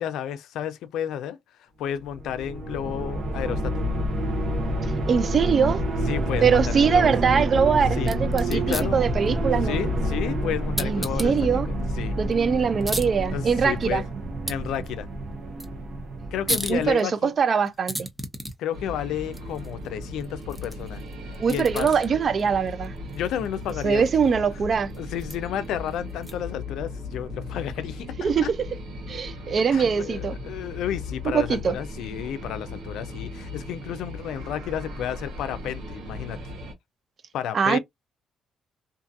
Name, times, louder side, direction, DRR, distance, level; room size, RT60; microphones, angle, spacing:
voice 1, 0.0-3.8 6.1-7.1 8.0-8.2 8.4-9.0 9.6-11.3 11.7-12.2 13.3-14.0 14.5-15.1 16.3-17.3 18.6-21.0 21.5-21.9 23.1-24.3 25.0-28.5 29.7-36.4 37.3-37.8, left 10 dB, 85° left, 0.4 m, -32 dB
sound 1, 2.0-16.9, right 1 dB, 65° right, 0.8 m, -28 dB
voice 2, 5.1-5.8 6.4-9.8 10.8-11.7 12.2-14.0 16.7-18.1 21.4-22.9 23.8-24.9 28.2-28.6 29.1-30.4 31.2-31.7 37.5-37.8, right 6 dB, 50° right, 0.4 m, -22 dB
sound 2, 8.0-26.6, right 1 dB, 10° right, 0.6 m, -38 dB
sound 3, 18.7-36.7, left 2 dB, 85° right, 1.0 m, -37 dB
2.5 x 2.5 x 2.4 m
cardioid pair, 90°, 0 cm